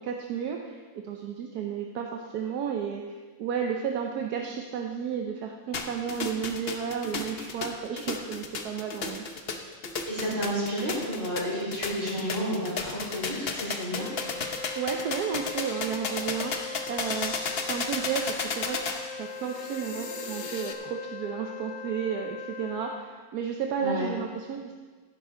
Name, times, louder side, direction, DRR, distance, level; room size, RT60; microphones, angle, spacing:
voice 1, 0.0-3.0 3.4-9.2 14.8-17.3 17.7-18.8 19.1-24.7, right 7 dB, 65° right, 2 dB, 1.2 m, -32 dB
sound 1, 5.7-20.7, left 4 dB, 50° left, 0.7 m, -34 dB
voice 2, 10.1-14.1 23.8-24.1, equal, 40° right, -7 dB, 4.4 m, -31 dB
Wind instrument woodwind instrument, 13.9-23.1, left 4 dB, 80° left, 1.7 m, -40 dB
15.0 x 11.0 x 3.8 m, 1.4 s
omnidirectional pair, 2.1 m